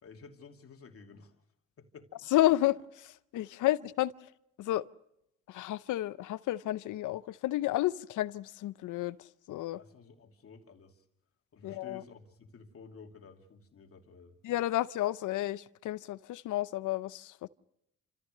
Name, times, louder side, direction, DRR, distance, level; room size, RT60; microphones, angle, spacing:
voice 1, 0.0-1.4 1.8-2.1 9.7-11.0 11.5-14.4, left 5 dB, 50° left, 2.8 m, -53 dB
voice 2, 2.3-4.1 4.6-4.9 5.5-9.2 9.5-9.8 11.6-12.0 14.4-17.5, left 15 dB, 80° left, 0.7 m, -31 dB
29.0 x 14.5 x 6.6 m
cardioid pair, 90°, 30 cm